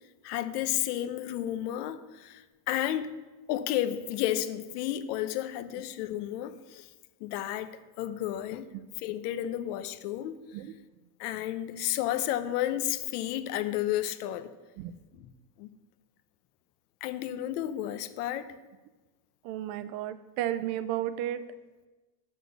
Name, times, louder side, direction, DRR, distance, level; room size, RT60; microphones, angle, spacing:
voice 1, 0.2-3.1 3.5-6.9 7.2-7.7 8.0-8.7 9.0-10.4 11.2-14.5 15.1-15.3 15.6-15.7 17.0-18.5, left 12 dB, 80° left, 11 dB, 0.9 m, -32 dB
voice 2, 19.4-21.4, right 12 dB, 55° right, 13 dB, 0.7 m, -33 dB
8.7 x 6.3 x 6.8 m, 1.2 s
cardioid pair, 160°, 46 cm